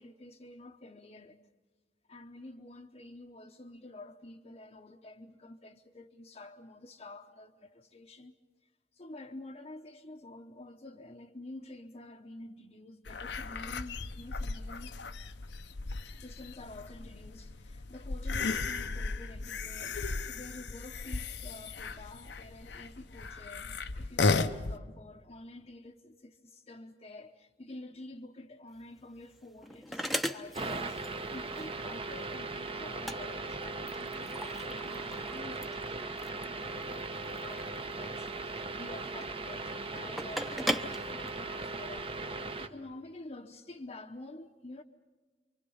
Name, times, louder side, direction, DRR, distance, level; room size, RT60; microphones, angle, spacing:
voice 1, 0.0-1.4 2.1-8.3 8.9-15.0 16.0-31.0 31.3-44.8, left 2 dB, 35° left, 0.8 m, -49 dB
sound 1, 13.1-24.8, left 3 dB, 80° left, 0.8 m, -35 dB
sound 2, 28.7-42.0, equal, ahead, 0.8 m, -40 dB
sound 3, 30.5-42.7, right 3 dB, 30° right, 0.9 m, -38 dB
28.0 x 24.5 x 5.6 m
head